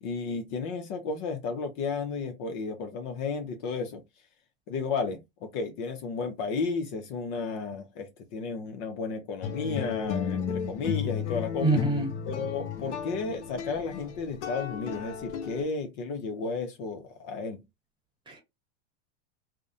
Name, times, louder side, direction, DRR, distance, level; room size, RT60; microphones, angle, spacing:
voice 1, 0.0-4.0 4.7-11.8 12.3-17.6, left 4 dB, 45° left, 0.6 m, -33 dB
sound 1, 9.4-15.6, left 7 dB, 85° left, 0.6 m, -34 dB
voice 2, 11.6-12.1 18.3-18.4, right 2 dB, 15° right, 1.0 m, -25 dB
2.5 x 2.0 x 2.6 m
supercardioid pair, 130°, 34 cm